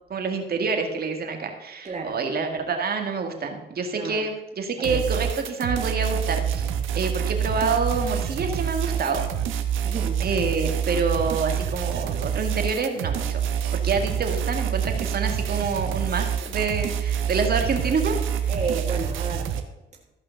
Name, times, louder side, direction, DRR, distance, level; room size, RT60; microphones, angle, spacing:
voice 1, 0.1-6.7 7.0-9.2 10.2-13.5 13.7-18.5, right 4 dB, 50° right, 4 dB, 2.2 m, -27 dB
voice 2, 1.8-2.2 3.9-4.3 4.8-5.0 9.8-10.2 18.5-19.6, right 4 dB, 35° right, -1 dB, 1.7 m, -31 dB
sound 1, 4.8-19.6, right 8 dB, 85° right, 1.2 m, -27 dB
14.5 x 5.7 x 6.6 m, 0.99 s
cardioid pair, 90°, 20 cm